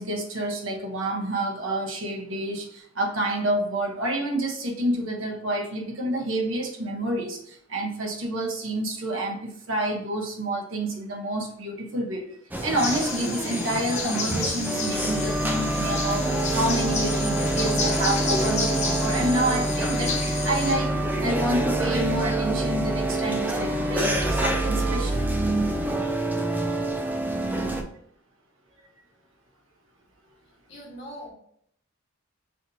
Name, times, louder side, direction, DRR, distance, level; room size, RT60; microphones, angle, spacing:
voice 1, 0.0-20.9 21.2-25.2, right 1 dB, 70° right, 2 dB, 0.9 m, -28 dB
sound 1, 12.5-27.8, right 1 dB, 10° right, 0.3 m, -26 dB
sound 2, 12.8-20.7, left 4 dB, 35° left, 0.8 m, -31 dB
voice 2, 30.7-31.3, equal, 60° left, -2 dB, 1.3 m, -40 dB
5.8 x 2.7 x 2.6 m, 0.68 s
head